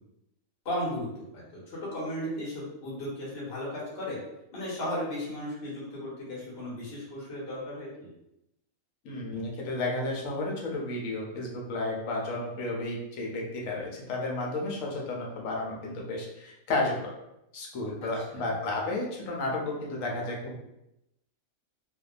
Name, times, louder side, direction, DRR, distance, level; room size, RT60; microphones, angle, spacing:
voice 1, 0.6-1.1 1.3-4.2 4.5-8.1 18.3-18.5, left 1 dB, 50° left, -6 dB, 1.1 m, -35 dB
voice 2, 9.0-17.1 17.5-20.6, left 2 dB, 75° left, -2 dB, 1.0 m, -32 dB
2.6 x 2.2 x 2.4 m, 0.86 s
omnidirectional pair, 1.4 m